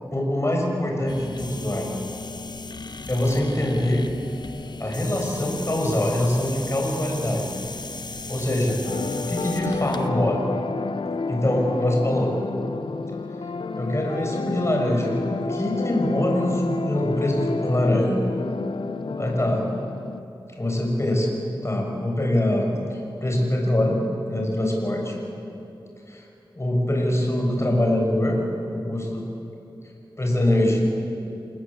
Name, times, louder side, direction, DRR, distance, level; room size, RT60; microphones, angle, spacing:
voice 1, 0.1-1.9 3.1-4.1 4.8-7.5 8.3-8.8 9.2-10.4 11.3-12.3 13.7-18.2 19.2-19.6 20.6-21.3 21.6-24.0 24.3-25.1 26.1-26.2 26.5-28.4 28.7-29.2 30.2-30.8, left 1 dB, 30° left, 0 dB, 6.9 m, -23 dB
sound 1, 1.1-10.1, left 3 dB, 55° left, 1.1 m, -36 dB
sound 2, 8.8-20.2, left 4 dB, 70° left, 0.9 m, -30 dB
28.5 x 19.0 x 8.8 m, 2.9 s
wide cardioid pair, 60°, 9 cm